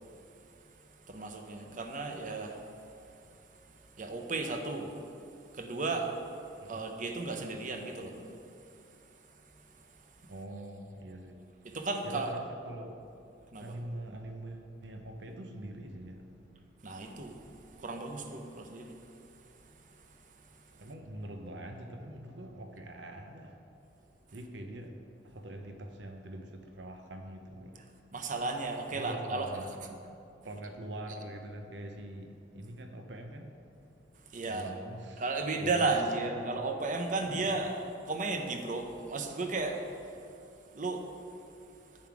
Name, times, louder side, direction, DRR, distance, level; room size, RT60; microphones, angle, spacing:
voice 1, 1.1-2.5 4.0-4.9 5.6-6.1 6.7-8.1 11.7-12.3 13.5-13.7 16.8-17.3 17.8-18.9 28.1-29.5 34.3-34.7 35.2-37.7 38.1-39.8 40.7-41.0, right 3 dB, 45° right, 4 dB, 0.7 m, -33 dB
voice 2, 10.3-11.4 12.0-13.0 13.6-16.2 20.8-23.6 24.3-25.0 25.2-27.7 28.9-29.7 30.4-33.5 34.4-35.2 35.6-35.9 36.2-36.6, right 1 dB, 70° right, 5 dB, 0.9 m, -44 dB
7.8 x 7.1 x 4.9 m, 2.7 s
head